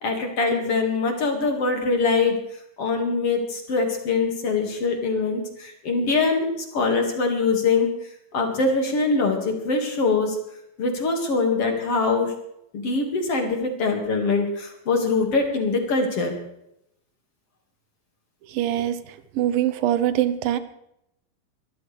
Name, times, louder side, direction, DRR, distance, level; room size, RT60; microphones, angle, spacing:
voice 1, 0.0-2.4 2.8-7.9 8.3-10.4 10.8-12.3 12.7-16.4, left 4 dB, 45° left, 3 dB, 2.7 m, -23 dB
voice 2, 18.6-19.0 19.4-20.6, right 11 dB, 85° right, 12 dB, 2.6 m, -22 dB
23.0 x 13.5 x 3.3 m, 0.81 s
omnidirectional pair, 3.9 m